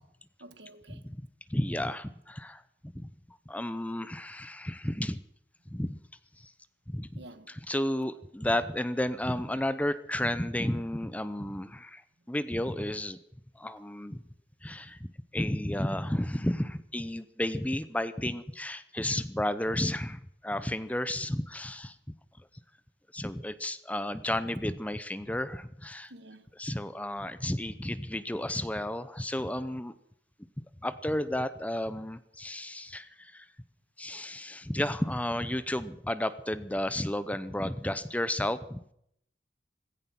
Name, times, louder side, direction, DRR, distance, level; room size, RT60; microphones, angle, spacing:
voice 1, 0.4-1.1 7.2-7.6 26.1-26.5, right 1 dB, 70° right, 1.5 m, -50 dB
voice 2, 1.5-5.2 5.7-6.0 6.4-6.5 6.9-7.2 7.7-12.0 12.3-13.2 13.5-14.2 14.6-22.0 23.1-26.1 26.6-29.9 30.8-33.5 34.0-38.9, left 1 dB, 10° left, 0.7 m, -32 dB
16.0 x 15.0 x 5.9 m
head